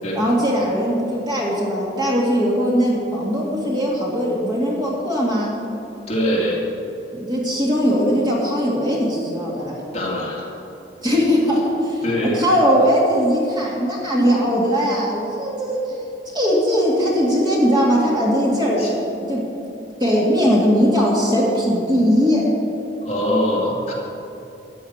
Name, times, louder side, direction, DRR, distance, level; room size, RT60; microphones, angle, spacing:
voice 1, 0.1-5.5 7.1-9.7 11.0-15.8 16.3-18.8 19.3-19.4 20.0-22.4, equal, 20° right, -4 dB, 2.2 m, -19 dB
voice 2, 6.1-6.6 9.9-10.5 12.0-12.4 18.8-18.9 23.0-23.9, equal, 35° left, -5 dB, 2.5 m, -22 dB
13.5 x 5.5 x 9.5 m, 2.9 s
head